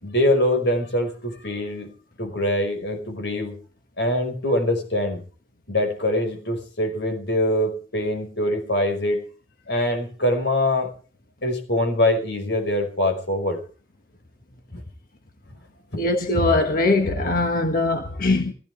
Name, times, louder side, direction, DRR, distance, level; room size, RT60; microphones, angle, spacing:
voice 1, 0.0-1.9 2.2-3.6 4.0-5.2 5.7-9.2 9.7-10.9 11.4-13.6 14.7-14.8 15.9-16.0, left 1 dB, 85° left, 5.4 m, -23 dB
voice 2, 16.0-18.5, left 2 dB, 50° left, 1.6 m, -21 dB
22.0 x 16.5 x 3.6 m
head